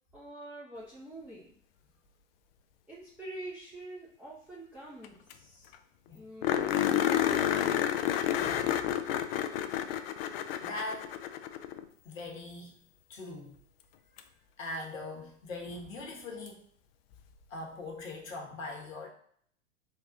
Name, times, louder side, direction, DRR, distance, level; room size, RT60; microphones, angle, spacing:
voice 1, 0.1-1.5 2.9-5.7 6.1-8.0, right 1 dB, 5° right, -8 dB, 0.6 m, -46 dB
sound 1, 5.0-5.1 5.3-5.4 5.7-5.8 6.4-11.8 14.2-14.3 17.1-17.2, left 10 dB, 50° left, 0.5 m, -30 dB
voice 2, 8.3-8.9 9.6-9.9 10.6-11.1 12.0-12.7 13.1-13.6 14.6-16.6 17.5-19.1, left 2 dB, 75° left, 1 dB, 1.1 m, -41 dB
3.5 x 2.3 x 3.8 m, 0.62 s
hypercardioid pair, 100°, 40 cm